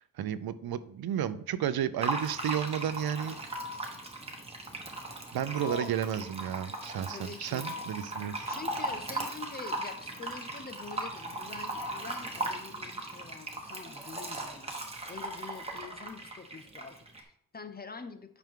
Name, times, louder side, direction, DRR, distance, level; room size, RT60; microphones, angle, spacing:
voice 1, 0.0-3.4 5.3-8.5, right 10 dB, 85° right, 14 dB, 0.6 m, -32 dB
Fill (with liquid), 2.0-17.2, right 2 dB, 15° right, 1.2 m, -38 dB
sound 1, 3.5-4.0 5.6-6.0 7.6-8.1 9.6-10.1 11.7-12.2, left 5 dB, 90° left, 3.5 m, -41 dB
voice 2, 5.5-6.0 7.1-7.7 8.5-14.8 15.1-18.4, left 4 dB, 25° left, 9 dB, 0.6 m, -45 dB
9.0 x 6.0 x 3.6 m, 0.69 s
wide cardioid pair, 175°, 36 cm